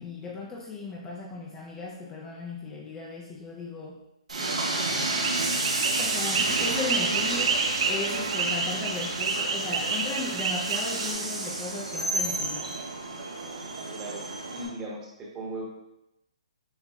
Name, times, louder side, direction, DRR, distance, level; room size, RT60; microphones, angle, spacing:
voice 1, 0.0-4.0 6.0-12.7, left 3 dB, 15° left, -2 dB, 0.4 m, -36 dB
Train, 4.3-14.7, right 2 dB, 80° right, 1.1 m, -31 dB
sound 1, 5.1-11.1, right 4 dB, 50° right, 0.6 m, -29 dB
voice 2, 13.9-15.6, right 1 dB, 20° right, -3 dB, 1.0 m, -38 dB
7.1 x 2.8 x 2.2 m, 0.89 s
hypercardioid pair, 145°, 4 cm